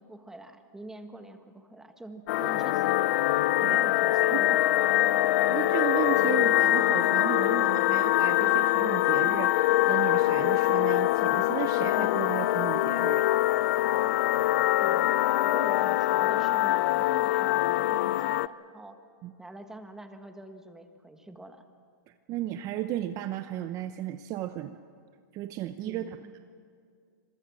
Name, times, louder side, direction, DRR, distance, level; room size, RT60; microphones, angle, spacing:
voice 1, 0.0-3.0 3.6-4.6 14.8-19.0 19.4-21.6 25.9-26.3, right 1 dB, 5° right, 7 dB, 1.6 m, -45 dB
sound 1, 2.3-18.5, left 15 dB, 55° left, 0.5 m, -24 dB
voice 2, 5.5-13.3 19.2-19.3 22.3-24.8 25.3-26.2, right 12 dB, 35° right, 10 dB, 0.8 m, -34 dB
26.5 x 23.0 x 6.2 m, 2.1 s
hypercardioid pair, 130°, 10 cm